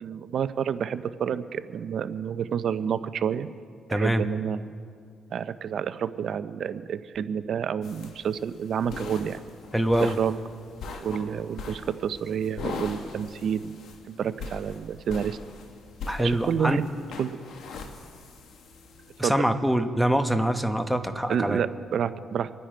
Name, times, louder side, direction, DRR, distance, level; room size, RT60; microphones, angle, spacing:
voice 1, 0.0-3.5 3.9-4.6 5.3-9.4 10.0-10.4 11.0-13.7 14.1-15.4 16.2-16.8 17.2-17.3 19.2-19.6 21.3-22.5, right 8 dB, 60° right, 13 dB, 0.6 m, -29 dB
voice 2, 3.9-4.2 9.7-10.2 16.1-16.8 19.2-21.6, right 1 dB, ahead, 9 dB, 1.0 m, -24 dB
sound 1, 7.8-19.2, left 4 dB, 75° left, 1.5 m, -41 dB
26.0 x 10.0 x 4.4 m, 2.2 s
cardioid pair, 90°, 0 cm